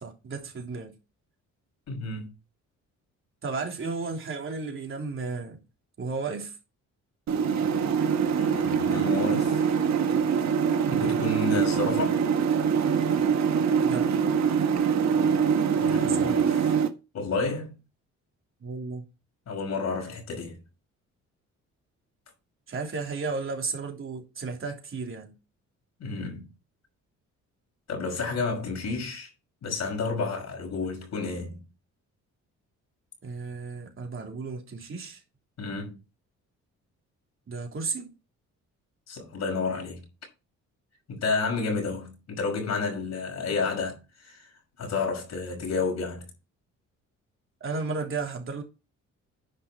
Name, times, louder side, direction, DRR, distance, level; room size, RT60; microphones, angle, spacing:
voice 1, 0.0-0.9 3.4-5.6 6.0-6.6 10.9-11.2 13.8-14.1 15.9-16.4 18.6-19.0 22.7-25.3 33.2-35.2 37.5-38.1 47.6-48.6, right 4 dB, 45° right, 3.5 m, -34 dB
voice 2, 1.9-2.3 8.4-9.6 10.9-12.2 15.7-16.6 17.1-17.7 19.5-20.6 26.0-26.4 27.9-29.3 29.6-31.6 35.6-36.0 39.1-40.0 41.1-44.5 44.8-46.2, left 4 dB, 60° left, 5.7 m, -31 dB
sound 1, 7.3-16.9, right 7 dB, 65° right, 1.4 m, -24 dB
10.5 x 5.8 x 4.7 m
cardioid pair, 90°, 30 cm